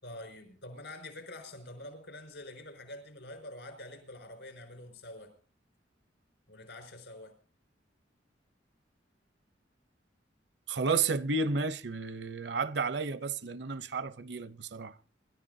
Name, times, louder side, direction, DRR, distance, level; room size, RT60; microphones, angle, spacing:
voice 1, 0.0-5.3 6.5-7.3, left 1 dB, 75° left, 5.6 m, -46 dB
voice 2, 10.7-15.0, right 4 dB, 65° right, 0.7 m, -32 dB
26.5 x 13.0 x 2.7 m
head